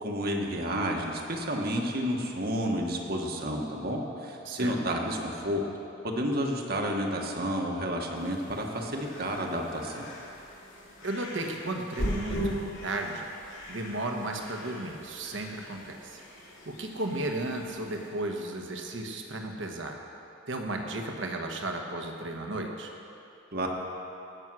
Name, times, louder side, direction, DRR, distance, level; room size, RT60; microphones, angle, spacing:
voice 1, 0.0-5.7 6.0-10.0 23.5-23.7, equal, 50° right, 1 dB, 1.3 m, -30 dB
voice 2, 4.4-4.8 11.0-13.3 13.7-16.2 16.6-20.0 20.5-22.9, right 2 dB, 70° right, 3 dB, 1.2 m, -34 dB
sound 1, 8.1-18.1, equal, 70° left, 2.9 m, -39 dB
17.0 x 6.3 x 6.1 m, 2.8 s
head